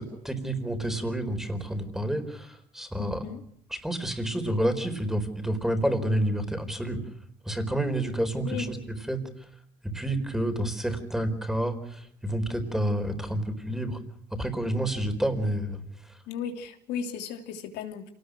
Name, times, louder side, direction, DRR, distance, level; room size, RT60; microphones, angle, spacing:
voice 1, 0.0-3.3 3.7-7.0 7.4-8.8 9.1-9.2 9.8-14.0 14.3-15.8 16.1-16.2, right 1 dB, ahead, 8 dB, 4.4 m, -29 dB
voice 2, 3.0-3.4 8.4-8.7 16.3-18.1, left 7 dB, 90° left, 4 dB, 3.1 m, -35 dB
27.5 x 19.0 x 6.4 m, 0.69 s
cardioid pair, 110°, 17 cm